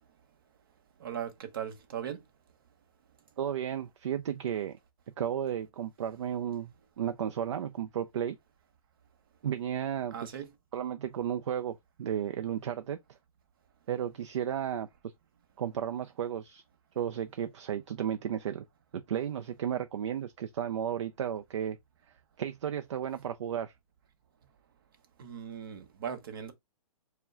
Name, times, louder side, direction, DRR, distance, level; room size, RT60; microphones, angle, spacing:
voice 1, 1.0-2.2 10.1-10.5 25.2-26.5, right 9 dB, 35° right, 0.8 m, -38 dB
voice 2, 3.4-4.8 5.2-8.4 9.4-10.1 10.7-13.0 13.9-14.9 15.6-16.6 17.0-18.7 18.9-21.8 22.4-23.7, right 9 dB, 55° right, 0.4 m, -33 dB
4.7 x 2.1 x 3.6 m
hypercardioid pair, 170°, 19 cm